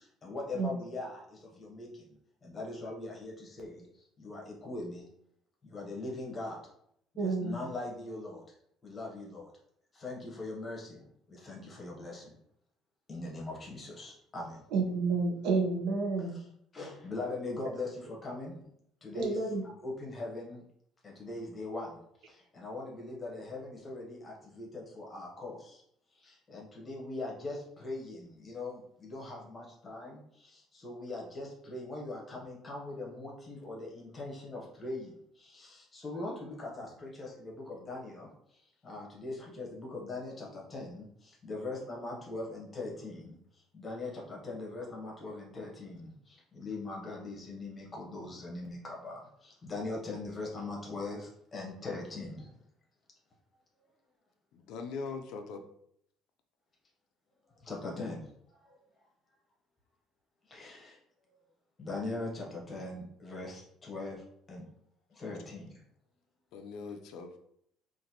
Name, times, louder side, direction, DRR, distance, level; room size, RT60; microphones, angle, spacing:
voice 1, 0.2-1.2 1.6-1.9 2.4-3.8 4.2-5.0 5.7-6.6 7.2-8.4 8.8-9.4 10.0-10.9 11.4-12.2 13.1-14.6 16.7-18.6 19.0-19.4 19.8-20.6 21.0-21.9 22.6-25.6 26.5-30.2 30.8-35.1 35.6-35.7 35.9-38.3 38.8-41.0 41.4-43.3 43.7-46.1 46.6-49.2 49.6-52.4 57.7-58.2 60.5-60.9 61.8-64.2 64.5-64.6 65.2-65.6, left 2 dB, 20° left, -2 dB, 0.9 m, -40 dB
voice 2, 7.2-7.6 14.7-16.4 19.1-19.6, right 4 dB, 75° right, 2 dB, 0.7 m, -30 dB
voice 3, 54.5-55.6 66.5-67.4, left 4 dB, 60° left, 6 dB, 0.4 m, -41 dB
3.9 x 2.5 x 2.8 m, 0.70 s
cardioid pair, 175°, 0 cm